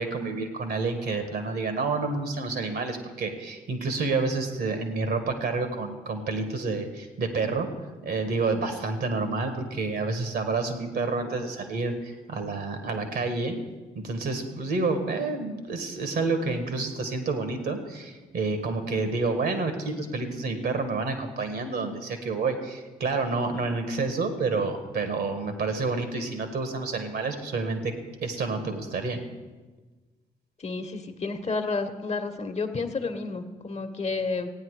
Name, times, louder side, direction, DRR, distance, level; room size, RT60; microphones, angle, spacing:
voice 1, 0.0-7.7 8.0-13.6 14.0-29.2, right 3 dB, 60° right, 7 dB, 1.7 m, -29 dB
voice 2, 30.6-34.5, left 4 dB, 35° left, 8 dB, 1.3 m, -31 dB
15.0 x 9.5 x 4.9 m, 1.3 s
hypercardioid pair, 40°, 18 cm